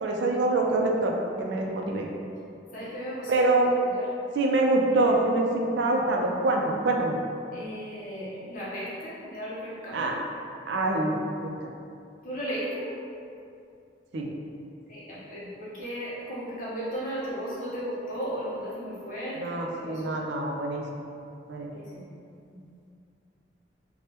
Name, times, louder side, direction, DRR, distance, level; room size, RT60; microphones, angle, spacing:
voice 1, 0.0-2.1 3.3-3.7 4.4-7.2 9.9-10.2 10.7-11.6 14.1-14.3 19.4-21.0 21.5-21.7, right 2 dB, 80° right, 0 dB, 0.4 m, -25 dB
voice 2, 2.7-3.4 3.8-4.1 7.5-10.1 12.2-12.9 14.9-20.1 21.7-22.1 22.5-22.6, equal, 45° left, -8 dB, 0.8 m, -35 dB
3.3 x 2.1 x 2.9 m, 2.5 s
head